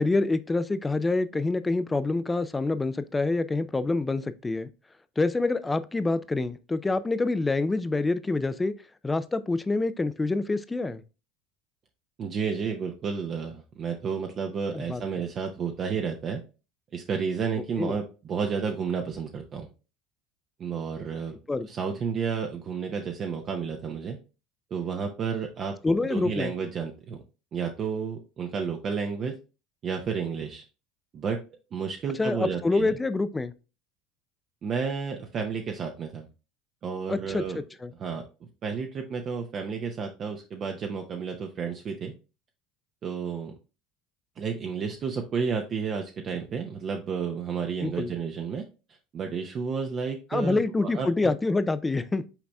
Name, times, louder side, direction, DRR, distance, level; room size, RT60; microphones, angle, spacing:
voice 1, 0.0-4.7 5.2-8.7 9.0-11.0 14.7-15.0 17.8-17.9 21.5-21.7 25.8-26.5 32.2-33.5 37.1-37.9 47.8-48.1 50.3-52.2, left 3 dB, 15° left, 0.4 m, -26 dB
voice 2, 12.2-16.4 16.9-19.7 20.6-21.3 21.7-24.2 24.7-25.8 26.1-27.2 27.5-29.3 29.8-30.6 31.1-31.4 31.7-32.9 34.6-36.3 36.8-37.6 38.0-38.2 38.6-42.1 43.0-43.5 44.4-48.6 49.1-51.3, right 6 dB, 40° right, 0.6 m, -31 dB
5.8 x 4.0 x 2.2 m
supercardioid pair, 110°, 0 cm